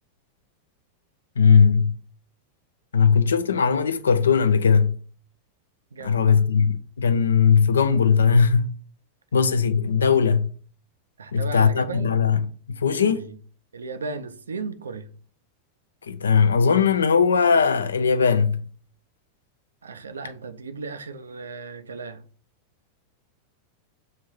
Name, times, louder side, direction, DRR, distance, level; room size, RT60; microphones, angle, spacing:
voice 1, 1.4-1.9 2.9-4.9 6.0-8.7 9.3-10.5 11.3-13.2 16.1-18.6, left 6 dB, 70° left, 0.4 m, -19 dB
voice 2, 5.9-6.4 11.2-12.2 13.0-13.4 13.7-15.1 19.8-22.2, right 4 dB, 70° right, 0.4 m, -35 dB
6.7 x 2.6 x 3.1 m
figure-of-eight pair, 90°, 0 cm